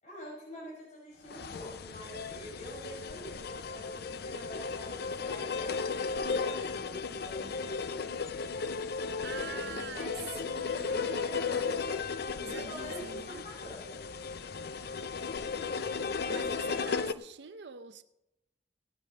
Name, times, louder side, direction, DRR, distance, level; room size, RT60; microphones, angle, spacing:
voice 1, 0.0-8.5 9.2-11.8 12.4-14.0, equal, 45° left, 5.2 m, -46 dB
sound 1, 1.3-17.1, left 5 dB, 65° left, 0.6 m, -35 dB
voice 2, 9.0-11.1 12.2-13.5 16.3-18.0, right 6 dB, 75° right, 0.6 m, -45 dB
18.0 x 9.2 x 5.3 m
head